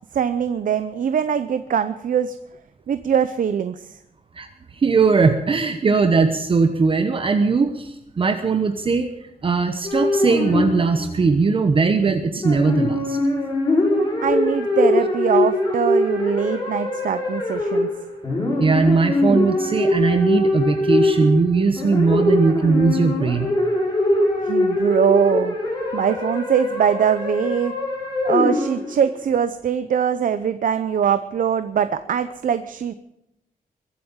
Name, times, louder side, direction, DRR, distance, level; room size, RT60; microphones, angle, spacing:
voice 1, 0.1-2.4 2.9-3.9 14.0-17.9 24.4-25.6 25.9-27.7 28.2-32.9, right 8 dB, 60° right, 11 dB, 0.7 m, -22 dB
voice 2, 4.7-9.1 9.4-13.2 18.6-23.5, right 4 dB, 35° right, 7 dB, 1.0 m, -19 dB
sound 1, 9.8-11.2 12.4-29.1, left 2 dB, 25° left, 5.2 m, -22 dB
22.5 x 8.5 x 7.2 m, 0.85 s
wide cardioid pair, 165°, 15 cm